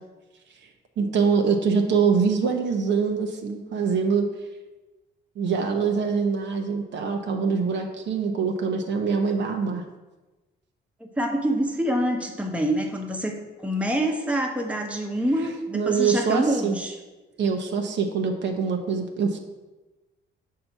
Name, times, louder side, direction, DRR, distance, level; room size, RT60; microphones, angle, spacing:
voice 1, 1.0-4.3 5.4-9.8 15.4-15.5 15.7-16.8 17.4-19.4, right 5 dB, 65° right, 4 dB, 0.8 m, -24 dB
voice 2, 11.0-17.0, right 1 dB, 5° right, 2 dB, 0.9 m, -26 dB
6.6 x 2.8 x 5.7 m, 1.1 s
cardioid pair, 90°, 20 cm